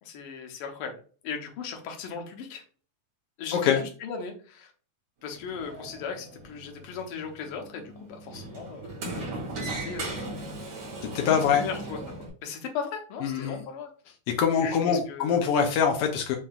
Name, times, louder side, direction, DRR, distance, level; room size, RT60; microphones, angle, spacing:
voice 1, 0.0-2.6 3.4-4.7 5.2-9.3 9.6-10.3 11.5-12.0 12.4-13.9 14.6-15.4, left 6 dB, 70° left, 3 dB, 1.3 m, -37 dB
Sliding door, 5.3-12.3, right 2 dB, 75° right, 3.5 m, -38 dB
voice 2, 11.1-11.6 13.2-13.6 14.4-16.4, left 7 dB, 85° left, 2 dB, 1.3 m, -24 dB
7.5 x 2.7 x 2.4 m, 0.40 s
omnidirectional pair, 3.4 m